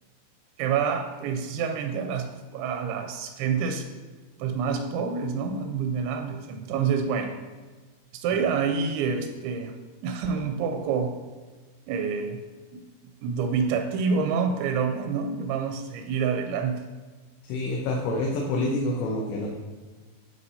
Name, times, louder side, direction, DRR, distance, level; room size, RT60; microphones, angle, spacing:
voice 1, 0.6-3.9 4.4-7.3 8.1-9.7 10.0-11.1 11.9-12.4 12.7-12.8 13.2-16.8, right 6 dB, 85° right, 5 dB, 2.8 m, -27 dB
voice 2, 17.5-19.5, left 2 dB, 80° left, -2 dB, 3.0 m, -27 dB
11.5 x 4.5 x 2.7 m, 1.3 s
omnidirectional pair, 5.1 m